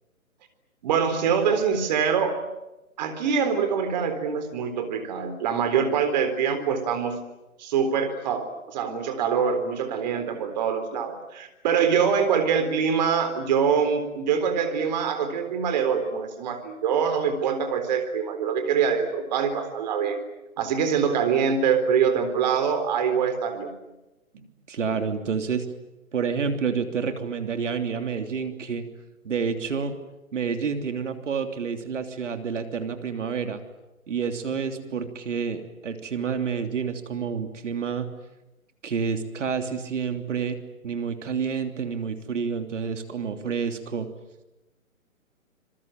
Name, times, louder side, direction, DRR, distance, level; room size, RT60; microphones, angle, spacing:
voice 1, 0.8-2.4 3.0-7.2 7.6-20.2 20.6-23.7 34.8-34.9, right 6 dB, 30° right, 8 dB, 4.0 m, -24 dB
voice 2, 24.7-25.7 26.1-28.8 29.2-29.9 30.3-33.6 34.1-38.1 38.8-40.6 40.8-44.1, right 6 dB, 60° right, 7 dB, 3.3 m, -29 dB
27.0 x 22.5 x 9.1 m, 0.99 s
hypercardioid pair, 160°, 42 cm